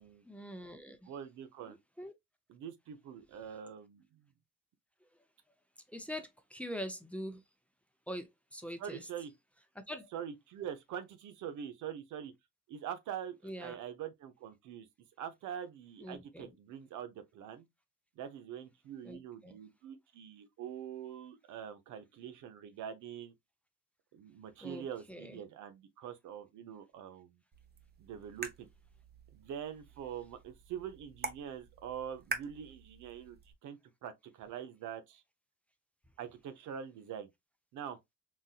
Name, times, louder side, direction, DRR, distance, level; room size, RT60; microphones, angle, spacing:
voice 1, 0.3-1.1 1.6-2.1 5.9-7.4 8.1-9.1 9.8-10.1 13.4-13.8 16.0-16.5 19.0-19.5 24.6-25.4, equal, 5° left, 0.6 m, -44 dB
voice 2, 1.0-1.8 2.5-4.3 8.8-9.3 10.1-12.3 12.7-14.9 15.2-17.7 18.2-23.3 24.1-27.4 28.0-28.7 29.3-35.2 36.2-37.3 37.7-38.0, right 9 dB, 80° right, 0.7 m, -44 dB
sound 1, 27.5-33.5, right 4 dB, 35° right, 0.8 m, -46 dB
4.0 x 2.6 x 2.3 m
cardioid pair, 90°, 30 cm